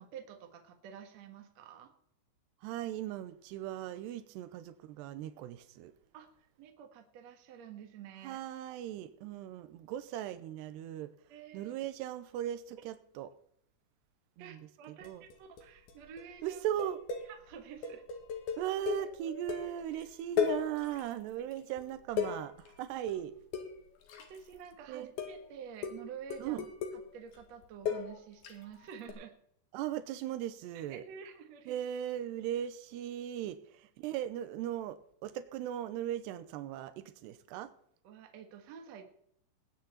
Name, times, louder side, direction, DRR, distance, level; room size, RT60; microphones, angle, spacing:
voice 1, 0.0-1.9 6.1-8.4 11.3-11.7 14.4-16.6 17.3-18.0 21.3-21.5 22.2-22.3 24.3-26.7 26.9-29.3 30.9-31.8 38.0-39.0, right 8 dB, 55° right, 5 dB, 2.0 m, -49 dB
voice 2, 2.6-5.9 8.2-11.1 11.5-13.3 14.4-15.2 16.4-17.0 18.6-22.5 22.8-23.3 24.9-25.1 26.4-26.6 29.7-31.0 31.7-33.6 34.0-37.7, right 11 dB, 80° right, 12 dB, 2.9 m, -38 dB
sound 1, 15.0-15.6 15.9-16.2 16.5-20.0 20.4-21.2 21.5-24.7 25.2-25.5 25.8-28.6 29.1-29.2, left 7 dB, 65° left, 3.5 m, -36 dB
20.0 x 9.3 x 4.2 m, 0.68 s
omnidirectional pair, 5.0 m